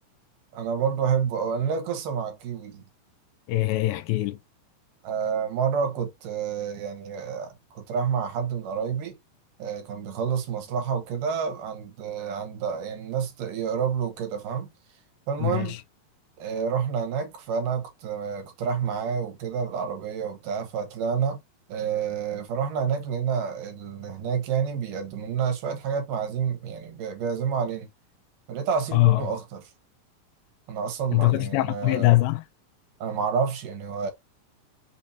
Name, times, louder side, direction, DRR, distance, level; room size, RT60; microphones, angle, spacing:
voice 1, 0.5-2.8 5.0-9.2 9.6-14.7 15.3-15.8 16.4-21.4 21.7-27.9 28.5-29.6 30.7-32.1 33.0-34.1, right 7 dB, 70° right, 2.7 m, -29 dB
voice 2, 3.5-4.4 15.4-15.8 28.9-29.2 31.1-32.4, left 19 dB, 90° left, 2.4 m, -22 dB
6.1 x 2.8 x 2.9 m
omnidirectional pair, 4.1 m